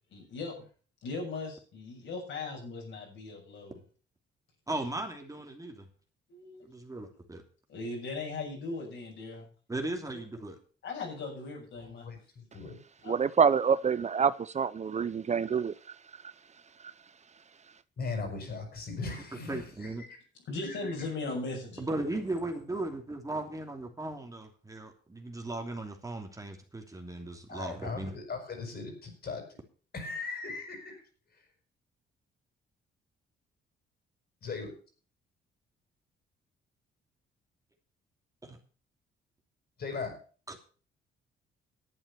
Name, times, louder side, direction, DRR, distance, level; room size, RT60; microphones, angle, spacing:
voice 1, 0.1-0.7 1.0-3.8 6.3-6.7 7.7-9.5 10.1-10.2 10.8-12.1 13.0-13.2 20.5-21.8, left 3 dB, 70° left, 7.1 m, -38 dB
voice 2, 4.7-5.9 6.6-7.4 9.7-10.6 18.1-18.2 19.5-20.0 21.8-28.1 38.4-38.6 40.5-40.6, right 2 dB, 15° right, 2.9 m, -37 dB
voice 3, 11.8-12.8 18.0-20.2 20.6-20.9 21.2-21.3 27.5-29.4 29.9-31.0 34.4-34.7 39.8-40.1, left 4 dB, 50° left, 6.0 m, -39 dB
voice 4, 13.1-15.7, right 6 dB, 35° right, 0.6 m, -26 dB
11.0 x 8.8 x 6.9 m
cardioid pair, 90°, 20 cm